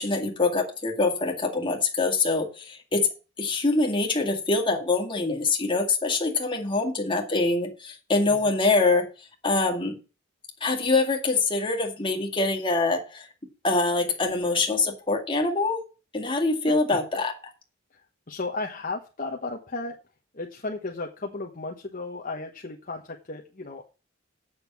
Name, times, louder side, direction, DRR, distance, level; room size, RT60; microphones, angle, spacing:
voice 1, 0.0-3.1 3.4-9.1 9.4-10.0 10.6-13.3 13.6-15.8 16.1-17.3, left 3 dB, 25° left, 2 dB, 2.1 m, -24 dB
voice 2, 18.3-19.9 20.3-23.8, left 3 dB, 40° left, 1 dB, 1.1 m, -34 dB
8.2 x 6.6 x 7.1 m, 0.32 s
head